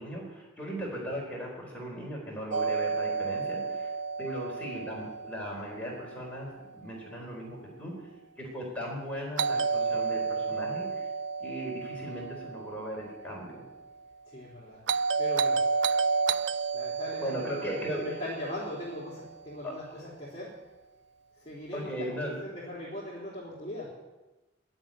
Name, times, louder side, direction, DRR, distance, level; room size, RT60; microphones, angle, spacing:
voice 1, 0.0-3.9 4.2-8.1 8.4-11.1 11.4-13.6 17.2-18.0 19.6-20.1 21.7-22.3, equal, 5° left, -4 dB, 4.4 m, -38 dB
Doorbell, 2.5-6.5 9.4-13.6 14.9-19.3, right 5 dB, 65° right, 0.4 m, -31 dB
voice 2, 14.2-14.8 15.2-15.7 16.7-20.6 21.3-24.0, left 1 dB, 25° left, -8 dB, 4.0 m, -40 dB
12.0 x 9.0 x 9.2 m, 1.1 s
head